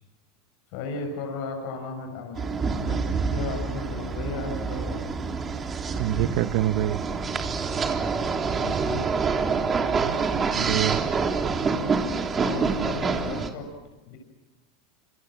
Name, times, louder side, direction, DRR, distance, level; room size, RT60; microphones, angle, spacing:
voice 1, 0.7-3.0 3.3-5.0 8.6-9.0 12.3-13.7 14.0-14.2, left 4 dB, 65° left, 3 dB, 6.7 m, -35 dB
sound 1, 2.4-13.5, right 5 dB, 25° right, 3.5 m, -27 dB
voice 2, 6.0-7.0 10.0-11.0, right 13 dB, 65° right, 11 dB, 1.2 m, -26 dB
28.0 x 27.5 x 7.6 m, 1.1 s
hypercardioid pair, 110°, 0 cm